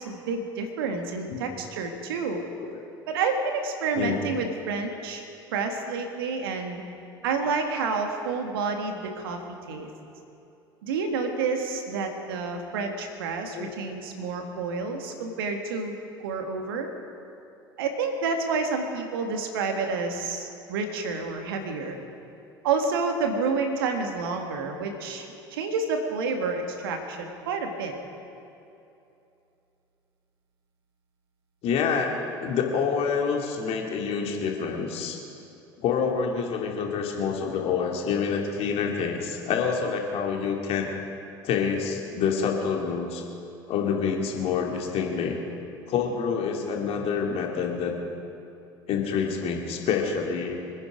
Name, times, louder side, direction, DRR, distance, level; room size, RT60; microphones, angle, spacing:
voice 1, 0.0-2.4 3.1-5.2 5.5-6.8 7.2-9.4 9.7-9.9 10.8-15.9 16.2-16.9 17.8-22.0 22.6-25.3 25.5-28.0, right 4 dB, 70° right, 4 dB, 1.9 m, -29 dB
voice 2, 31.6-32.1 32.4-35.2 35.8-40.9 41.4-43.2 43.7-45.4 45.9-48.0 48.9-50.6, left 6 dB, 55° left, 1 dB, 2.6 m, -27 dB
26.0 x 9.8 x 5.1 m, 2.8 s
figure-of-eight pair, 65°, 12 cm